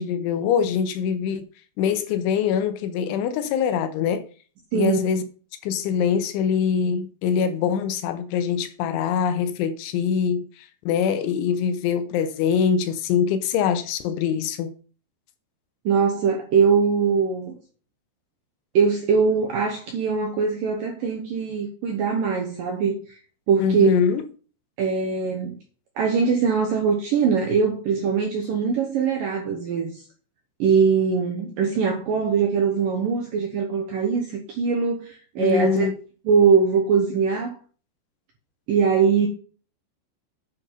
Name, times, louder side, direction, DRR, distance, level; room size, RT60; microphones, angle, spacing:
voice 1, 0.0-1.5 1.8-4.3 4.7-5.2 5.6-14.7 23.6-24.2 35.4-35.9, left 7 dB, 80° left, 3.1 m, -23 dB
voice 2, 15.9-17.5 18.7-23.2 23.5-23.9 24.8-25.6 26.0-30.0 30.6-35.9 36.3-37.6 38.7-39.3, right 5 dB, 75° right, 2.1 m, -22 dB
9.9 x 5.3 x 5.4 m
omnidirectional pair, 5.6 m